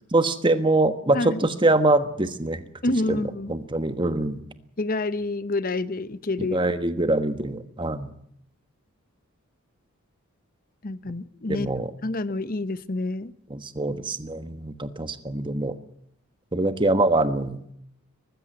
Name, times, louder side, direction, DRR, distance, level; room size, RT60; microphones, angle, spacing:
voice 1, 0.1-2.6 3.1-3.2 3.5-4.4 6.4-8.1 11.5-11.9 13.5-15.7 16.5-17.6, right 2 dB, 20° right, 1.3 m, -24 dB
voice 2, 2.8-3.5 4.8-6.6 10.8-11.7 12.0-13.3, left 2 dB, 40° left, 0.8 m, -28 dB
20.0 x 15.5 x 9.4 m
head